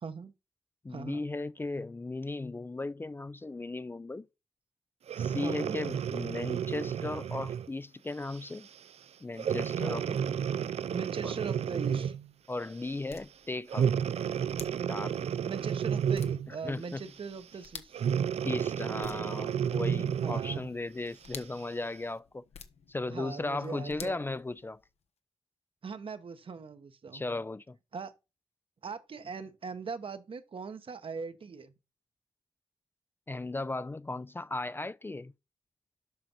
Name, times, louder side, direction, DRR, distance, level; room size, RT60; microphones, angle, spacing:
voice 1, 0.0-0.3 0.9-1.2 5.4-5.8 9.8-10.2 10.8-12.2 15.5-18.1 20.2-20.6 23.1-24.2 25.8-27.2 27.9-28.1 28.8-31.7, right 5 dB, 60° right, 1.0 m, -40 dB
voice 2, 0.8-4.3 5.2-8.7 9.2-10.0 11.2-11.3 12.5-13.9 14.9-15.2 16.5-17.0 18.4-22.4 22.9-24.8 27.1-27.8 33.3-35.3, left 2 dB, 20° left, 0.4 m, -36 dB
Breathing, 5.1-7.7 8.3-8.6 9.4-12.3 13.7-16.6 17.9-20.7 21.3-21.4, right 8 dB, 85° right, 0.4 m, -31 dB
sound 1, 12.0-25.1, left 6 dB, 85° left, 1.1 m, -53 dB
7.6 x 5.8 x 5.5 m
wide cardioid pair, 95°, 10 cm